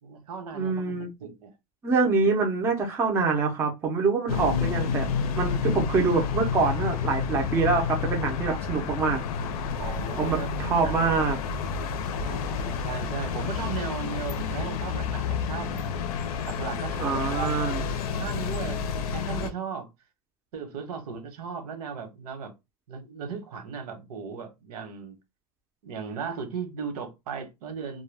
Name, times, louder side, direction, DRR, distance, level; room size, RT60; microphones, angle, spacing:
voice 1, 0.0-1.5 8.5-8.8 9.8-10.5 10.8-11.1 12.2-15.8 16.5-17.6 18.2-19.9 20.5-22.5 22.9-25.2 25.8-28.0, right 6 dB, 85° right, 1.0 m, -36 dB
voice 2, 0.5-1.1 1.8-5.1 5.4-9.2 10.2-11.4 17.0-17.8, right 4 dB, 15° right, 0.5 m, -25 dB
sound 1, 4.3-19.5, left 6 dB, 75° left, 0.6 m, -30 dB
2.2 x 2.2 x 3.3 m
supercardioid pair, 160°, 19 cm